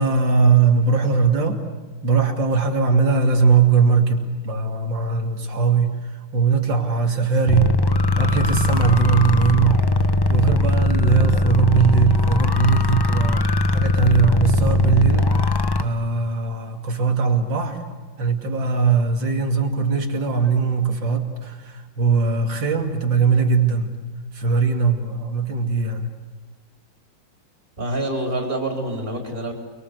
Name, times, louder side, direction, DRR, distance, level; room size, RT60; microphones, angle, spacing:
voice 1, 0.0-1.6 2.0-6.0 6.3-7.8 8.2-9.9 10.3-23.9 24.3-26.1, right 5 dB, 80° right, 4 dB, 3.4 m, -20 dB
sound 1, 7.5-15.8, left 2 dB, 35° left, 0.4 m, -20 dB
voice 2, 27.8-29.5, right 1 dB, 25° right, 1 dB, 4.2 m, -26 dB
29.5 x 22.5 x 8.2 m, 1.4 s
omnidirectional pair, 2.0 m